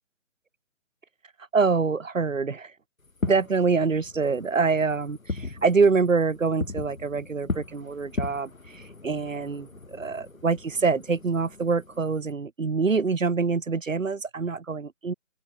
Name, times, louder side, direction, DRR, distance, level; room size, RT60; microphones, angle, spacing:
voice 1, 1.5-2.7 3.2-15.1, right 4 dB, 70° right, 2.6 m, -25 dB
Fireworks, 3.0-12.3, left 3 dB, 90° left, 3.9 m, -38 dB
open air
figure-of-eight pair, 160°, 40 cm